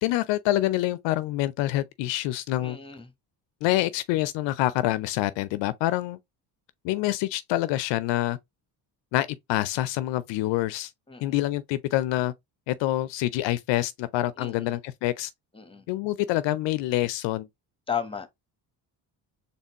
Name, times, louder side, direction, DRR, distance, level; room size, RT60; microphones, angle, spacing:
voice 1, 0.0-2.8 3.6-6.2 6.8-8.4 9.1-10.9 11.2-12.3 12.7-15.3 15.9-17.5, left 15 dB, 70° left, 0.5 m, -26 dB
voice 2, 2.6-3.0 11.1-11.3 14.4-14.7 15.5-15.8 17.9-18.3, left 7 dB, 10° left, 1.0 m, -34 dB
4.2 x 3.3 x 2.9 m
supercardioid pair, 65°, 45 cm